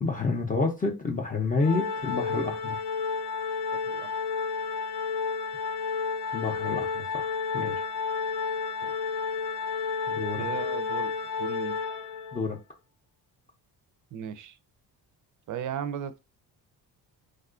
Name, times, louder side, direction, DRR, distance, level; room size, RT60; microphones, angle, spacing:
voice 1, 0.0-2.8 6.3-7.8 10.1-10.5 12.3-12.6, left 3 dB, 20° left, 0.4 m, -29 dB
Organ, 1.6-12.5, left 5 dB, 80° left, 0.7 m, -31 dB
voice 2, 10.4-11.1 11.4-11.8 14.1-14.6 15.5-16.2, right 9 dB, 55° right, 0.4 m, -36 dB
3.6 x 2.4 x 2.4 m
cardioid pair, 120°, 39 cm